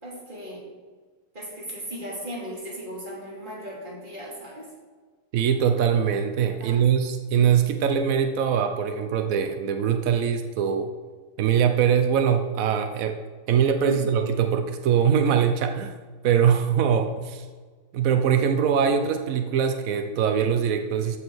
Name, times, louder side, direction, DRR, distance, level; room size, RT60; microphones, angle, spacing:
voice 1, 0.0-0.7 1.3-4.7 6.6-6.9 13.8-14.1, equal, 25° right, -4 dB, 3.0 m, -36 dB
voice 2, 5.3-10.9 11.4-13.1 13.5-15.9 16.2-17.5 17.9-21.2, right 8 dB, 80° right, 6 dB, 0.7 m, -22 dB
14.0 x 4.8 x 6.2 m, 1.5 s
omnidirectional pair, 2.3 m